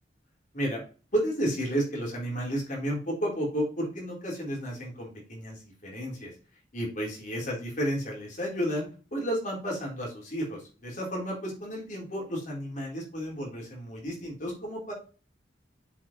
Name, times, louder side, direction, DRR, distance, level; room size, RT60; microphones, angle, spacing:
voice 1, 1.1-6.3 6.7-14.9, equal, 45° left, -2 dB, 3.8 m, -32 dB
7.4 x 5.0 x 4.4 m, 0.36 s
head